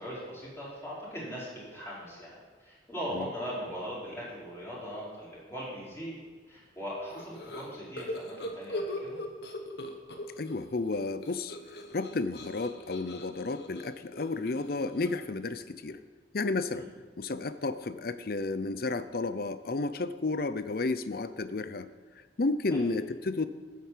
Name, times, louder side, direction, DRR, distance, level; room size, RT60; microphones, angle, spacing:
voice 1, 0.0-6.1 6.5-9.2 16.7-16.9 22.7-22.8, equal, 15° left, -7 dB, 4.2 m, -40 dB
sound 1, 7.1-10.6 10.9-15.4, left 1 dB, 70° left, 1.5 m, -40 dB
voice 2, 10.4-16.0 16.3-16.9 17.2-21.9 22.2-23.5, left 3 dB, 55° left, 13 dB, 0.6 m, -32 dB
10.5 x 8.4 x 7.5 m, 1.5 s
head